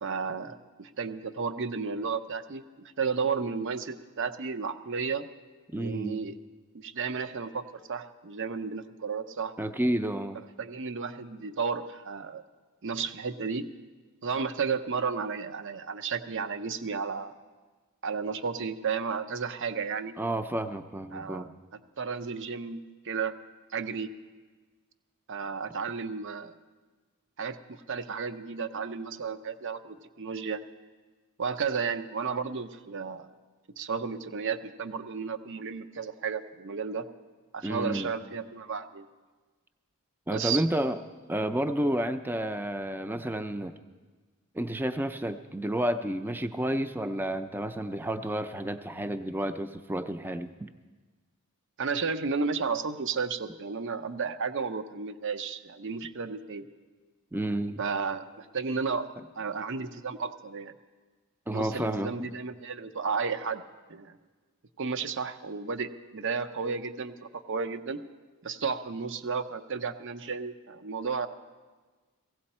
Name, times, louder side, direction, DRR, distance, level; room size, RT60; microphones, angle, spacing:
voice 1, 0.0-5.3 5.7-6.4 6.7-7.6 7.9-9.5 10.6-12.4 12.8-13.7 14.2-17.3 18.0-20.2 21.1-21.5 22.0-23.3 23.7-24.1 25.3-26.5 27.4-30.6 31.4-33.3 33.8-37.0 37.5-39.1 40.3-40.6 51.8-56.7 57.8-60.7 61.5-63.6 63.9-64.2 64.8-68.0 68.4-71.3, right 5 dB, 60° right, 9 dB, 0.7 m, -33 dB
voice 2, 5.7-6.2 9.6-10.4 20.2-21.5 37.6-38.1 40.3-41.0 41.3-43.7 44.5-50.7 57.3-57.8 61.5-62.1, right 1 dB, 10° right, 10 dB, 0.4 m, -30 dB
16.5 x 16.0 x 4.3 m, 1.4 s
head